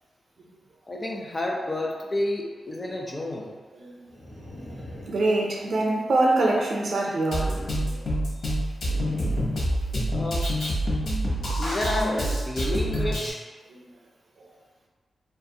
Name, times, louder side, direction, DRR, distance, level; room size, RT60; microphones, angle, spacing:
voice 1, 0.9-3.6 10.1-10.5 11.5-13.4, left 1 dB, 25° left, -1 dB, 0.4 m, -30 dB
voice 2, 3.8-4.1 4.5-4.8 5.1-7.5 7.8-8.1, right 2 dB, 60° right, -1 dB, 0.4 m, -25 dB
sound 1, 4.1-5.9 8.8-10.4, left 1 dB, 85° left, 1.1 m, -41 dB
Drum kit, 7.3-13.3, equal, 60° left, 0.8 m, -27 dB
2.5 x 2.4 x 2.7 m, 1.3 s
wide cardioid pair, 140°, 0 cm